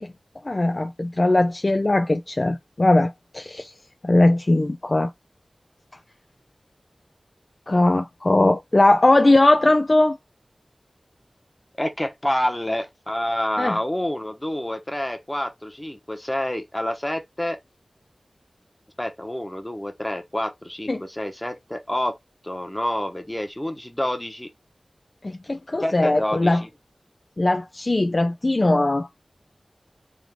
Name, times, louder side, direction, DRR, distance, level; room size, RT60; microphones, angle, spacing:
voice 1, 0.4-3.7 4.0-5.1 7.7-10.2 13.6-13.8 20.9-21.0 25.2-26.6 27.4-29.1, left 2 dB, 40° left, 0.4 m, -19 dB
voice 2, 11.8-17.6 19.0-22.2 22.4-24.5 25.8-26.7, left 1 dB, 15° left, 1.1 m, -28 dB
3.7 x 3.5 x 3.5 m
wide cardioid pair, 70°, 0 cm